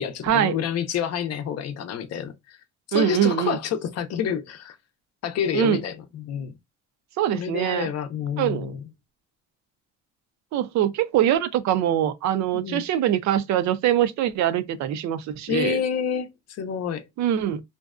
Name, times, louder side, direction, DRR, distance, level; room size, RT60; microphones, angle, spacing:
voice 1, 0.0-2.6 2.9-4.8 5.2-6.5 7.3-8.8 12.5-12.8 15.5-17.0, left 8 dB, 60° left, 0.5 m, -28 dB
voice 2, 2.9-3.6 5.5-5.8 7.2-7.9 8.4-8.7 10.5-15.8 17.2-17.6, right 11 dB, 70° right, 0.4 m, -23 dB
2.5 x 2.1 x 2.3 m
cardioid pair, 125°, 29 cm